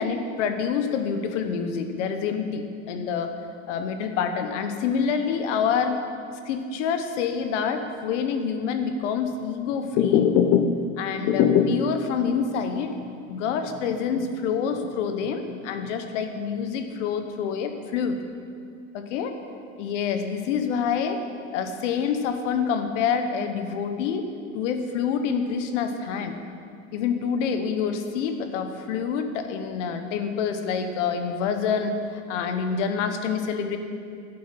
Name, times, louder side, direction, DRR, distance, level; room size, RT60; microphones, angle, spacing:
voice 1, 0.0-3.3 3.7-6.0 6.4-10.3 11.0-12.9 13.3-18.2 18.9-19.3 19.8-21.2 21.5-24.3 24.5-26.4 26.9-33.8, left 6 dB, 60° left, 7 dB, 1.2 m, -27 dB
sound 1, 9.8-10.9 11.1-12.0 12.4-12.5 12.9-13.0 13.5-14.9 15.2-15.9, left 8 dB, 35° left, 0.5 m, -22 dB
12.0 x 8.4 x 5.8 m, 2.4 s
supercardioid pair, 145°, 41 cm